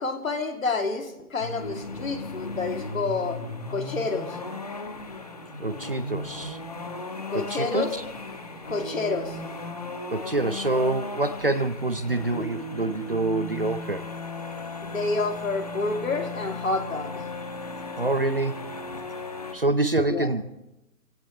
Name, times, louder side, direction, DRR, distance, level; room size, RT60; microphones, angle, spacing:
voice 1, 0.0-3.4 3.7-4.4 7.3-7.9 8.7-9.4 14.8-17.1 20.1-20.3, left 3 dB, 60° left, 4 dB, 2.8 m, -28 dB
sound 1, 1.4-19.5, left 2 dB, 25° left, 1.1 m, -36 dB
voice 2, 5.6-6.6 7.3-8.0 10.1-14.1 18.0-18.7 19.5-20.4, right 2 dB, 40° right, 12 dB, 0.6 m, -26 dB
25.0 x 16.5 x 3.2 m, 0.90 s
hypercardioid pair, 175°, 45 cm